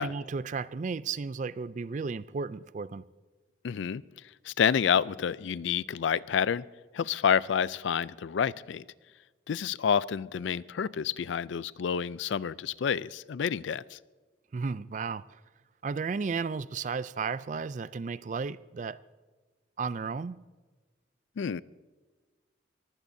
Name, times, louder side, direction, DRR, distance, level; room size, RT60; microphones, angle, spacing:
voice 1, 0.0-3.0 14.5-15.4 15.8-19.0 19.8-20.4, right 5 dB, 40° right, 0.3 m, -34 dB
voice 2, 3.6-4.0 4.4-6.6 6.9-8.8 9.5-14.0 21.4-21.6, left 7 dB, 70° left, 0.4 m, -28 dB
22.5 x 15.5 x 2.7 m
head